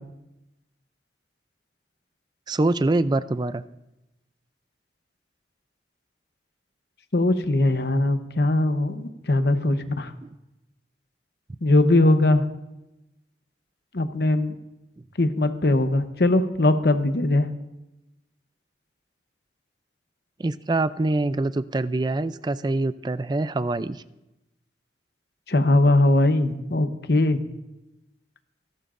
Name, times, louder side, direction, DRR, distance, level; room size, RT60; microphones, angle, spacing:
voice 1, 2.5-3.6 10.2-10.3 20.4-24.0, right 2 dB, 25° right, 14 dB, 0.4 m, -25 dB
voice 2, 7.1-10.1 11.6-12.4 13.9-14.5 15.2-17.5 25.5-27.4, left 2 dB, 65° left, 8 dB, 0.9 m, -20 dB
27.0 x 12.0 x 2.5 m, 0.94 s
head